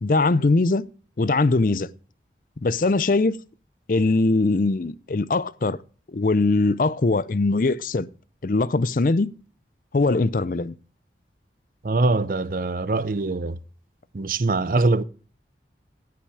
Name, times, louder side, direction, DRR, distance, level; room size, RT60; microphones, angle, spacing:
voice 1, 0.0-0.8 1.2-1.9 2.6-3.4 3.9-5.8 6.1-8.1 8.4-9.3 9.9-10.7, left 3 dB, 50° left, 0.5 m, -21 dB
voice 2, 11.8-13.6 14.1-15.0, right 3 dB, 50° right, 0.6 m, -23 dB
17.0 x 5.9 x 4.8 m
head